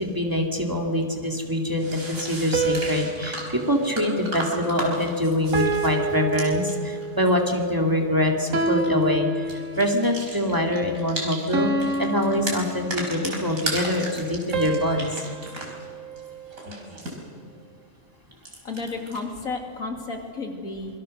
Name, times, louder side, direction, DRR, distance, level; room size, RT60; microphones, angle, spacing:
voice 1, 0.0-11.7 12.0-15.1, left 1 dB, 15° right, 1 dB, 2.5 m, -24 dB
sound 1, 1.3-1.4 1.8-7.3 8.7-9.1 9.3-11.5 11.8-15.9 16.2-17.2 18.3-19.2, right 1 dB, 85° right, 5.1 m, -35 dB
sound 2, 2.5-5.0 5.5-7.3 8.5-10.1 11.5-13.4 14.5-16.9, right 2 dB, 65° right, 1.9 m, -29 dB
voice 2, 16.6-17.1 18.6-21.0, left 3 dB, 85° left, 3 dB, 3.2 m, -33 dB
26.5 x 23.0 x 6.7 m, 2.2 s
omnidirectional pair, 1.4 m